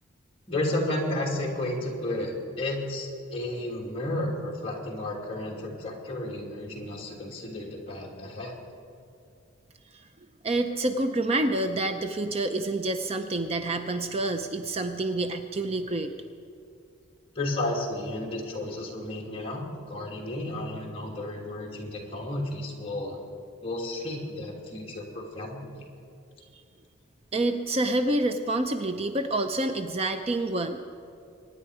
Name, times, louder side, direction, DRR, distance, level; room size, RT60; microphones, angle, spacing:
voice 1, 0.5-8.5 17.3-23.2 23.6-25.9, left 1 dB, 30° left, -2 dB, 2.7 m, -32 dB
voice 2, 10.4-16.1 26.5-26.6 27.3-30.8, right 2 dB, 30° right, 7 dB, 0.6 m, -28 dB
24.0 x 10.0 x 4.9 m, 2.5 s
head